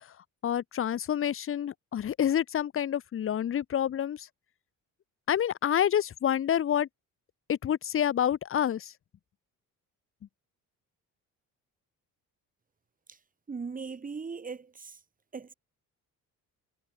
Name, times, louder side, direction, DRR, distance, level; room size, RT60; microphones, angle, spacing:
voice 1, 0.4-4.3 5.3-6.9 7.5-8.9, left 9 dB, 40° left, 1.0 m, -28 dB
voice 2, 13.5-15.0 15.3-15.5, right 5 dB, 25° right, 6.5 m, -39 dB
cardioid pair, 155°, 34 cm